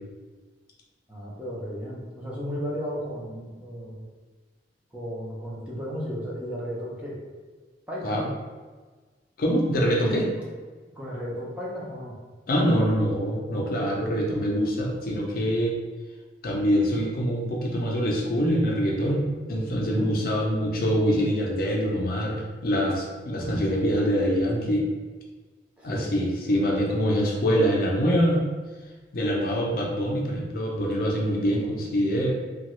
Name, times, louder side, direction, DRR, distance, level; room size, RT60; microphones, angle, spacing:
voice 1, 1.1-4.1 4.9-7.2 7.9-8.3 11.0-12.1 19.8-20.1 25.8-26.1, equal, 5° right, -6 dB, 0.5 m, -34 dB
voice 2, 9.4-10.3 12.5-15.8 16.4-24.9 25.8-28.4 29.1-32.3, equal, 55° left, -1 dB, 0.5 m, -24 dB
2.9 x 2.3 x 3.0 m, 1.4 s
head